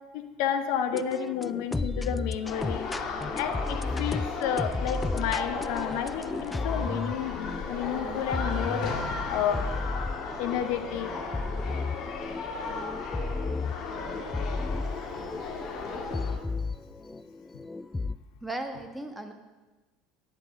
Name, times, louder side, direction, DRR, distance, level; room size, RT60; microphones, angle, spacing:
voice 1, 0.1-2.9 3.3-8.9 9.3-9.7 10.4-11.1 16.6-16.7, left 9 dB, 60° left, 7 dB, 1.0 m, -31 dB
sound 1, 0.9-18.2, left 3 dB, 15° left, 0.3 m, -34 dB
sound 2, 2.4-16.4, left 4 dB, 45° left, 2.0 m, -35 dB
voice 2, 18.4-19.3, right 2 dB, 5° right, 5 dB, 1.6 m, -36 dB
10.0 x 8.9 x 6.7 m, 1.2 s
figure-of-eight pair, 70°, 0 cm